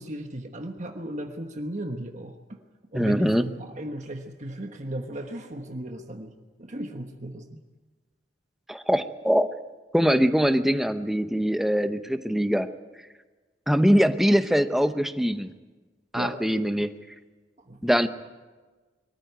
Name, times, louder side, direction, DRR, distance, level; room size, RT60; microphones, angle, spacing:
voice 1, 0.0-2.6 2.9-6.3 6.6-7.6 16.1-16.4 17.7-17.9, right 1 dB, 40° right, 4 dB, 1.3 m, -36 dB
voice 2, 2.9-3.4 8.7-9.5 9.9-12.7 13.7-15.5 16.1-16.9 17.8-18.1, equal, ahead, 9 dB, 0.8 m, -22 dB
23.0 x 14.0 x 9.3 m, 1.3 s
head